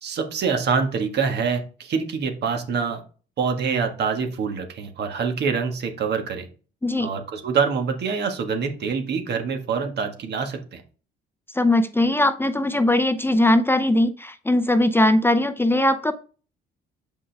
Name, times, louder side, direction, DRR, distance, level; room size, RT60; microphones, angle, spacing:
voice 1, 0.0-3.0 3.4-6.5 7.0-10.8, right 5 dB, 65° right, 6 dB, 1.5 m, -25 dB
voice 2, 11.5-16.1, left 1 dB, 10° left, 10 dB, 0.6 m, -20 dB
6.9 x 5.4 x 3.4 m, 0.38 s
cardioid pair, 85°, 19 cm